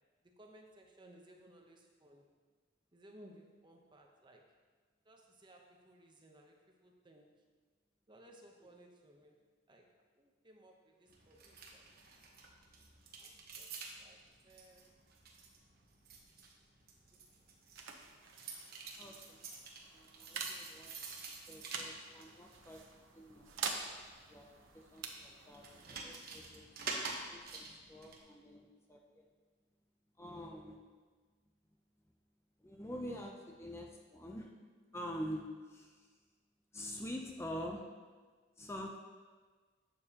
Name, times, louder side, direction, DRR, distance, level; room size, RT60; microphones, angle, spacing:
voice 1, 0.2-2.3 2.9-4.5 5.0-7.4 8.1-9.4 9.7-11.9 13.2-13.7 14.0-14.9 30.3-30.8, right 1 dB, 25° right, 1 dB, 0.9 m, -61 dB
sound 1, 11.1-28.2, right 4 dB, 50° right, 1.2 m, -50 dB
sound 2, 17.0-28.3, right 5 dB, 90° right, 0.9 m, -48 dB
voice 2, 19.0-19.5 19.9-20.9 21.5-22.8 23.1-23.6 24.3-24.5 24.7-27.1 27.3-29.2 30.2-30.8 32.6-34.5 34.9-36.1 36.7-37.8 38.6-39.0, equal, 15° left, 1 dB, 0.6 m, -46 dB
11.0 x 7.0 x 2.9 m, 1.4 s
head